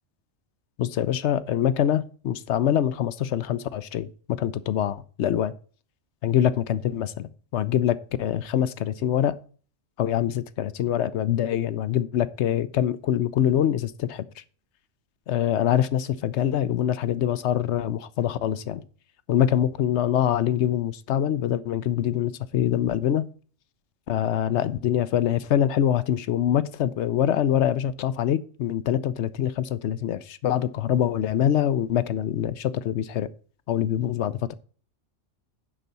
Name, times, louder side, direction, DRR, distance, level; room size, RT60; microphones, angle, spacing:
voice 1, 0.8-5.5 6.2-9.3 10.0-14.2 15.3-18.8 19.3-23.3 24.1-33.3 33.7-34.5, left 10 dB, 70° left, 0.9 m, -24 dB
10.0 x 4.0 x 6.8 m
omnidirectional pair, 1.3 m